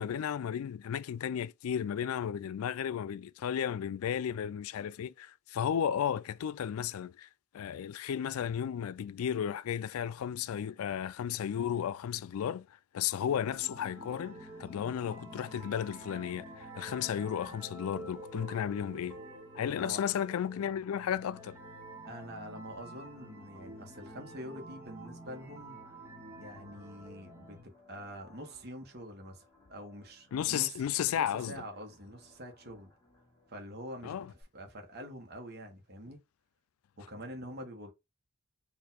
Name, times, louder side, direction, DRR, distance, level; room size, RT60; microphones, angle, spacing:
voice 1, 0.0-7.3 7.5-12.7 12.9-19.2 19.5-21.6 30.3-31.6 34.0-34.3, left 9 dB, 80° left, 0.3 m, -34 dB
sound 1, 13.5-27.6, right 1 dB, 10° right, 1.0 m, -49 dB
voice 2, 19.7-20.0 22.1-25.8 26.4-30.8 31.1-32.9 33.5-34.2 34.5-36.2 37.0-37.9, equal, 45° right, 1.2 m, -45 dB
sound 2, 23.2-34.4, left 2 dB, 15° left, 1.8 m, -64 dB
4.4 x 2.7 x 4.0 m
head